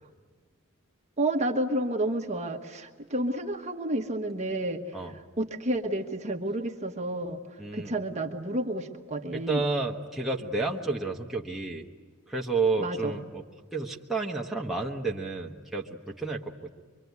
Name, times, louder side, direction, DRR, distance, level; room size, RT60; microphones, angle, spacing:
voice 1, 1.2-4.8 5.4-7.4 7.7-9.6 12.8-13.2, right 1 dB, 35° right, 3 dB, 1.3 m, -30 dB
voice 2, 7.6-7.9 9.3-11.9 12.3-13.4 13.7-16.7, right 3 dB, ahead, -2 dB, 1.3 m, -31 dB
24.5 x 24.0 x 9.6 m, 1.5 s
head